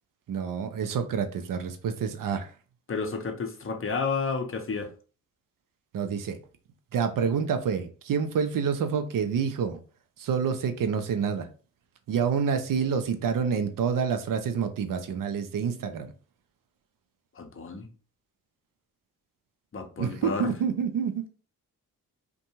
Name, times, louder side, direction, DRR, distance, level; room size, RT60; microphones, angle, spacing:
voice 1, 0.3-2.5 5.9-6.4 6.9-9.8 10.2-11.5 12.1-16.1 20.0-21.3, right 6 dB, 50° right, 0.6 m, -28 dB
voice 2, 2.9-4.9 17.4-17.9 19.7-20.5, left 4 dB, 30° left, 0.7 m, -31 dB
2.6 x 2.2 x 2.9 m
hypercardioid pair, 40°, 41 cm